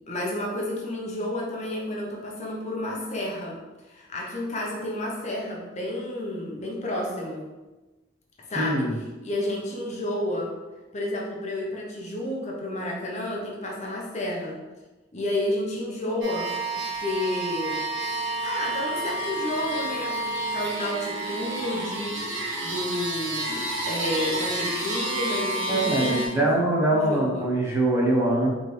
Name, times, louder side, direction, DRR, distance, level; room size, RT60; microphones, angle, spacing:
voice 1, 0.1-3.6 3.8-7.5 8.5-8.9 9.2-10.5 10.9-14.6 15.1-17.8 18.4-26.5 26.9-27.5, left 1 dB, 35° left, -2 dB, 0.8 m, -31 dB
voice 2, 8.5-8.9 25.7-28.5, right 1 dB, 15° right, -4 dB, 0.8 m, -23 dB
sound 1, 16.2-26.3, right 2 dB, 75° right, 1.0 m, -30 dB
4.2 x 3.3 x 3.2 m, 1.2 s
head